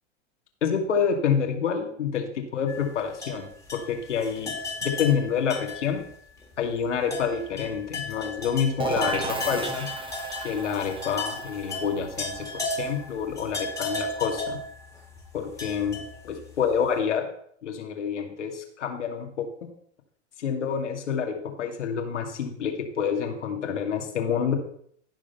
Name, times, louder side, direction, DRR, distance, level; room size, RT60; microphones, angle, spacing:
voice 1, 0.6-4.5 4.8-6.0 6.6-9.9 10.4-14.6 15.3-17.3 17.6-19.5 20.4-24.6, left 7 dB, 85° left, 3 dB, 2.4 m, -28 dB
sound 1, 2.7-6.1 6.4-6.5 7.0-16.7, left 2 dB, 10° left, 2.8 m, -35 dB
sound 2, 8.8-14.4, right 3 dB, 15° right, 1.4 m, -34 dB
15.0 x 5.1 x 5.7 m, 0.64 s
hypercardioid pair, 110°, 35 cm